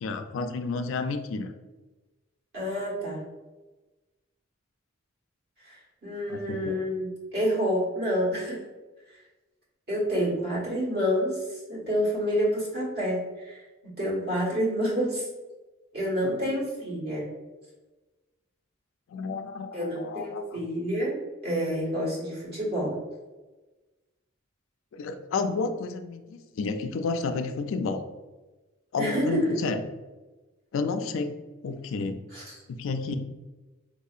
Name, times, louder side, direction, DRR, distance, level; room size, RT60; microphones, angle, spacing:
voice 1, 0.0-1.5 6.3-6.8 16.2-16.4 19.1-20.6 24.9-28.0 28.9-29.8 30.7-31.4 31.6-32.2 32.7-33.2, left 4 dB, 70° left, 8 dB, 0.3 m, -31 dB
voice 2, 2.5-3.2 5.6-8.6 9.9-13.6 14.0-15.3 15.9-17.3 19.7-21.2 21.4-23.0 29.0-29.6 32.3-32.6, equal, 55° right, -6 dB, 1.3 m, -28 dB
3.9 x 2.7 x 2.4 m, 1.2 s
head